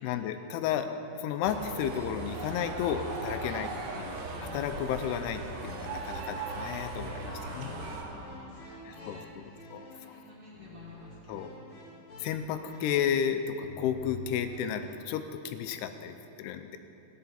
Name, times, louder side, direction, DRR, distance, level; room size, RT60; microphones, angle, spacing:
voice 1, 0.0-3.7 4.0-7.3 7.6-7.7 8.9-9.4 9.7-10.2 11.3-11.5 12.2-16.8, left 8 dB, 85° left, 8 dB, 2.6 m, -33 dB
sound 1, 1.4-8.0, right 3 dB, 85° right, 3.3 m, -38 dB
sound 2, 3.1-3.2 4.2-5.2 5.8-6.3 7.4-14.9, left 3 dB, 55° left, 1.2 m, -49 dB
voice 2, 7.2-9.6 9.9-12.0, equal, 35° right, -7 dB, 3.2 m, -50 dB
16.5 x 10.5 x 4.3 m, 2.7 s
omnidirectional pair, 4.7 m